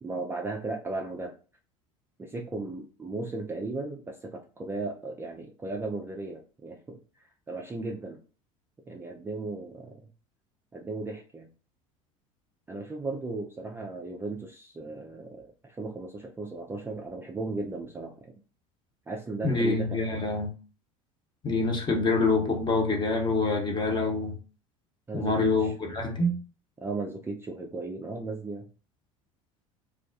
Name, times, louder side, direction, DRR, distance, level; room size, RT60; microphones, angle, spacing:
voice 1, 0.0-1.3 2.2-7.0 7.5-8.2 8.9-10.0 10.7-11.5 12.7-18.3 19.1-20.0 25.1-25.7 26.8-28.7, right 3 dB, 15° right, 1 dB, 0.4 m, -36 dB
voice 2, 19.4-20.5 21.4-24.4 25.1-26.4, left 3 dB, 25° left, 2 dB, 0.9 m, -26 dB
2.3 x 2.2 x 2.6 m, 0.36 s
figure-of-eight pair, 70°, 18 cm